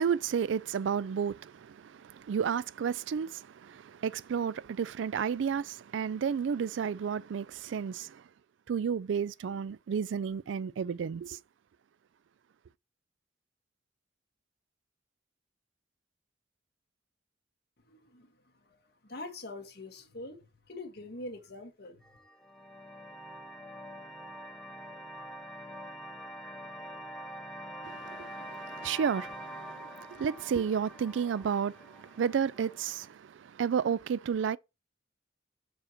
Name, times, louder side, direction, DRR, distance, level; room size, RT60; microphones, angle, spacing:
voice 1, 0.0-8.2 8.7-11.4 27.8-34.6, right 7 dB, 75° right, 0.3 m, -32 dB
voice 2, 17.8-22.0, left 2 dB, 55° left, 1.6 m, -45 dB
sound 1, 22.0-33.1, equal, ahead, 0.9 m, -45 dB
6.3 x 4.8 x 4.4 m
head